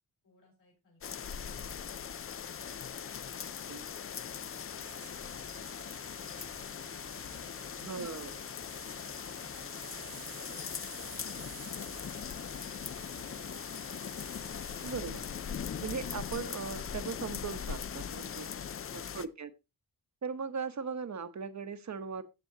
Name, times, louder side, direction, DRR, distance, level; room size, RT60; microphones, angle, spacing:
voice 1, 0.2-2.1, left 2 dB, 65° left, -5 dB, 4.9 m, -66 dB
sound 1, 1.0-19.3, left 7 dB, 35° left, 0.4 m, -40 dB
sound 2, 2.8-15.0, right 10 dB, 70° right, 0.7 m, -53 dB
sound 3, 4.7-14.3, equal, 5° left, 0.9 m, -60 dB
voice 2, 7.8-8.4 14.8-15.3 15.8-18.5 18.9-19.5 20.2-22.2, right 5 dB, 45° right, 11 dB, 1.0 m, -38 dB
14.5 x 7.8 x 2.8 m, 0.26 s
wide cardioid pair, 145°, 38 cm